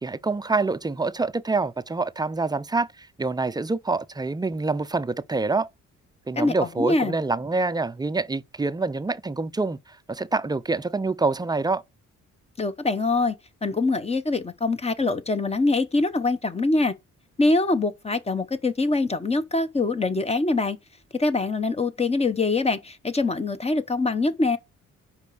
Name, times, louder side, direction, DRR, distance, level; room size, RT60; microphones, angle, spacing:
voice 1, 0.0-5.7 6.3-11.8, right 3 dB, 15° right, 0.4 m, -26 dB
voice 2, 6.4-7.1 12.6-13.3 13.6-16.9 17.4-20.8 21.2-24.6, left 3 dB, 20° left, 0.8 m, -24 dB
5.2 x 5.0 x 6.2 m
cardioid pair, 105°, 30 cm